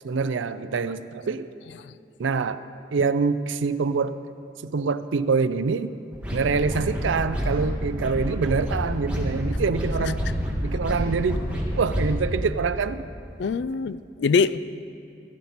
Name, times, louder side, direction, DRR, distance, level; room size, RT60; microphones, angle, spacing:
voice 1, 0.0-1.5 2.2-2.6 2.9-4.2 4.6-6.0 6.3-10.2 10.6-11.4 11.8-13.1, right 4 dB, 90° right, 13 dB, 0.5 m, -25 dB
sound 1, 6.1-12.2, equal, 5° right, 1.7 m, -28 dB
voice 2, 13.4-14.6, left 5 dB, 70° left, 16 dB, 0.3 m, -23 dB
15.0 x 12.0 x 4.2 m, 2.6 s
head